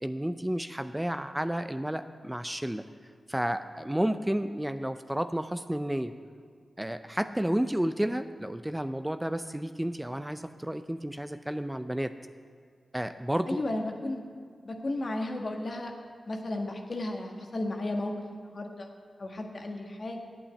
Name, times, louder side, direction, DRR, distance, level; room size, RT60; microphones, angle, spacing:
voice 1, 0.0-2.8 3.3-6.1 6.8-12.1 12.9-13.6, right 1 dB, 10° right, 10 dB, 0.5 m, -31 dB
voice 2, 13.5-14.2 14.6-15.9 16.3-18.9 19.2-20.2, left 2 dB, 55° left, 2 dB, 1.5 m, -34 dB
8.6 x 8.6 x 8.2 m, 2.1 s
cardioid pair, 40°, 0 cm